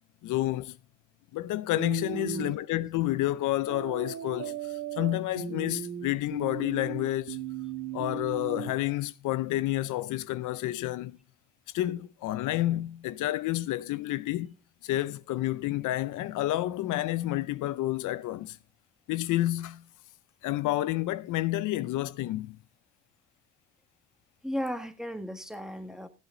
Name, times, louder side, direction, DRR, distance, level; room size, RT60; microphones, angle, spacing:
voice 1, 0.2-0.8 1.3-7.4 7.9-11.2 11.7-14.5 14.8-18.6 19.1-19.8 20.4-22.6, left 15 dB, 85° left, 0.6 m, -30 dB
sound 1, 1.8-2.6 3.7-8.7, right 9 dB, 80° right, 1.9 m, -37 dB
voice 2, 2.1-2.5 24.4-26.1, equal, ahead, 1.5 m, -35 dB
14.0 x 8.1 x 3.8 m
cardioid pair, 90°, 30 cm